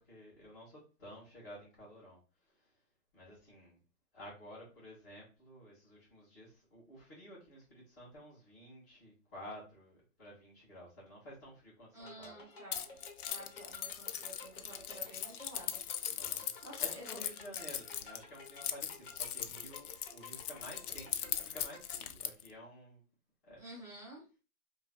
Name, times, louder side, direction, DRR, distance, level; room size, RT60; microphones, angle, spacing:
voice 1, 0.1-2.2 3.1-3.8 4.1-12.4 16.1-16.5 16.9-23.0 23.4-23.6, equal, 15° left, -14 dB, 0.7 m, -52 dB
voice 2, 11.9-12.9 13.3-17.2 23.6-24.2, right 1 dB, 15° right, -7 dB, 1.5 m, -51 dB
sound 1, 12.0-22.0, left 3 dB, 40° left, 1.0 m, -54 dB
Keys jangling, 12.7-22.5, left 10 dB, 90° left, 0.6 m, -39 dB
2.7 x 2.6 x 3.3 m, 0.33 s
hypercardioid pair, 175°, 43 cm